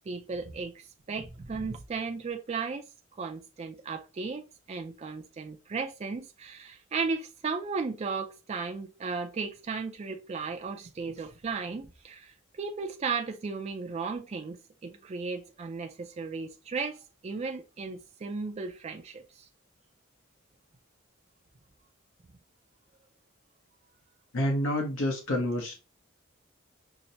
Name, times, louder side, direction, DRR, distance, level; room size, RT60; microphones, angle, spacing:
voice 1, 0.0-19.5, right 4 dB, 30° right, 0.3 m, -35 dB
voice 2, 24.3-25.7, left 1 dB, 75° left, 0.8 m, -28 dB
5.6 x 2.0 x 2.6 m
head